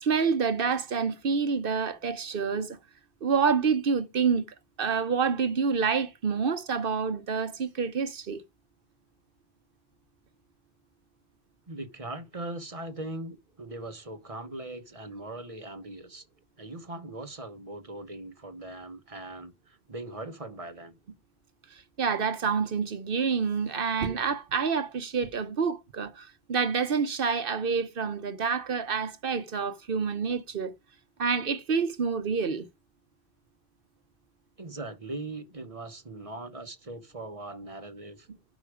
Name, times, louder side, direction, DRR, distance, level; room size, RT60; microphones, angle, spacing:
voice 1, 0.0-2.8 3.2-4.4 4.8-8.4 21.7-30.7 31.2-32.7, right 5 dB, 60° right, 1.0 m, -28 dB
voice 2, 11.7-16.2 16.6-21.0 34.6-38.3, right 2 dB, 35° right, 1.2 m, -40 dB
11.5 x 4.9 x 4.9 m
omnidirectional pair, 1.1 m